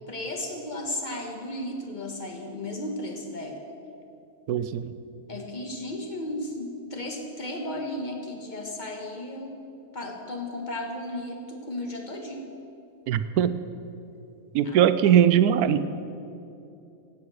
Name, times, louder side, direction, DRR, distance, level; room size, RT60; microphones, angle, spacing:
voice 1, 0.1-3.6 5.3-9.6 9.9-12.4 14.6-15.2, left 1 dB, 30° left, 1 dB, 1.7 m, -34 dB
voice 2, 4.5-4.9 13.1-13.6 14.5-15.8, right 9 dB, 85° right, 12 dB, 1.1 m, -21 dB
15.5 x 8.5 x 6.4 m, 2.7 s
omnidirectional pair, 1.5 m